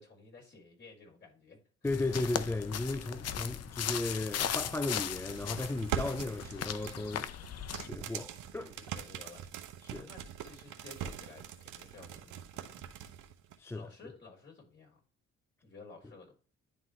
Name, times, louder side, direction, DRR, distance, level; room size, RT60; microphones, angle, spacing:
voice 1, 0.0-1.7 4.7-4.8 8.6-12.9 13.7-15.0 15.6-16.3, left 3 dB, 35° left, 4.0 m, -54 dB
voice 2, 1.8-7.3 7.8-8.7 9.8-10.1 13.6-13.9, left 2 dB, 10° left, 0.4 m, -35 dB
sound 1, 1.9-7.9, left 9 dB, 55° left, 0.7 m, -37 dB
sound 2, 5.1-13.6, right 9 dB, 80° right, 0.9 m, -42 dB
10.5 x 3.8 x 3.1 m
cardioid pair, 90°, 30 cm